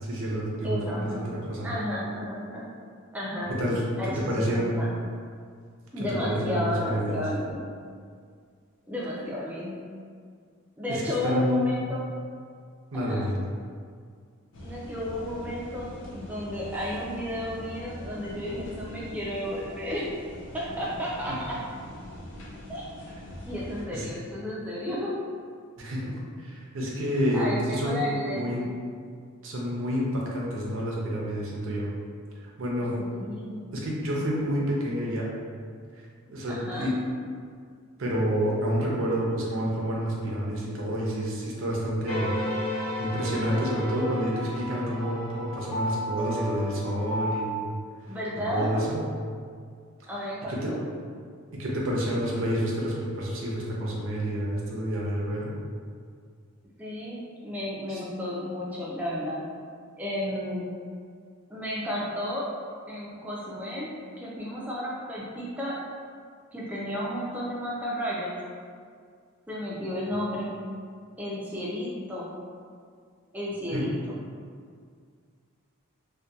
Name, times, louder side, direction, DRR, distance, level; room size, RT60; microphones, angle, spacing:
voice 1, 0.0-1.7 3.6-4.7 6.0-7.2 10.9-11.8 12.9-13.4 23.9-24.1 25.8-28.1 28.3-28.6 29.4-31.9 32.6-33.0 33.7-35.3 36.3-37.0 38.0-42.3 43.0-47.7 48.1-48.2 48.5-49.0 50.5-50.7 51.6-55.5 57.9-58.0 73.7-73.8, equal, 65° right, -4 dB, 0.5 m, -29 dB
voice 2, 0.6-1.2 1.6-2.7 3.1-3.5 4.0-4.9 5.9-7.7 8.9-9.7 10.8-12.0 12.9-13.2 14.6-20.1 20.5-21.6 22.7-22.8 23.4-25.1 27.3-28.7 33.0-33.6 36.5-36.9 48.1-48.9 50.1-50.8 56.8-59.4 60.0-60.7 61.5-62.5 62.9-63.9 64.2-65.8 66.5-68.4 69.5-70.5 71.2-72.3 73.3-74.2, left 1 dB, 5° right, -6 dB, 0.3 m, -32 dB
sound 1, 14.5-23.9, left 1 dB, 60° left, 0.5 m, -42 dB
sound 2, 42.1-47.4, left 1 dB, 80° left, 0.9 m, -33 dB
2.7 x 2.2 x 2.3 m, 2.1 s
head